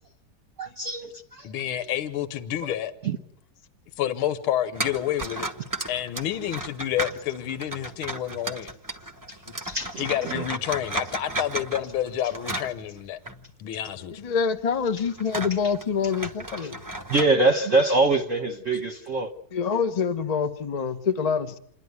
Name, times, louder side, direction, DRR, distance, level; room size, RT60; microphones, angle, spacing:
voice 1, 0.6-1.5 2.6-2.7 3.0-3.2 9.6-10.4 16.6-16.7 17.1-19.3, right 3 dB, 45° right, 1.1 m, -24 dB
voice 2, 1.4-2.9 4.0-5.5 5.9-8.7 10.0-13.2 13.6-14.1, left 11 dB, 75° left, 1.8 m, -29 dB
sound 1, 4.7-13.4 13.8-13.9 14.6-17.3, right 1 dB, 25° right, 0.4 m, -35 dB
voice 3, 14.2-16.8 19.5-21.6, left 6 dB, 55° left, 0.4 m, -26 dB
28.0 x 11.0 x 9.5 m
omnidirectional pair, 2.4 m